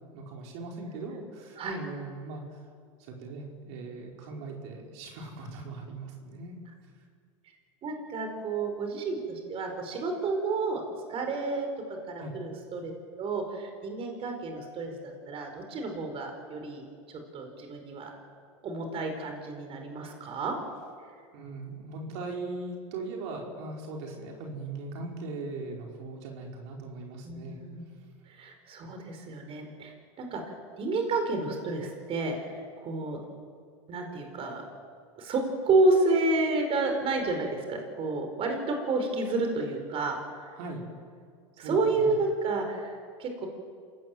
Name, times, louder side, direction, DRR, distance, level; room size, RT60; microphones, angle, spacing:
voice 1, 0.1-2.4 3.1-6.5 12.2-12.3 21.3-27.6 28.8-28.9 40.5-40.8 41.6-42.1, right 3 dB, 65° right, 0 dB, 4.9 m, -39 dB
voice 2, 7.8-10.8 11.1-12.9 13.2-18.1 18.6-20.6 27.2-27.8 28.3-30.4 30.8-33.2 33.9-34.7 35.2-40.5 41.6-43.5, right 3 dB, 35° right, 4 dB, 4.7 m, -30 dB
28.0 x 18.0 x 7.7 m, 2.1 s
hypercardioid pair, 115°, 15 cm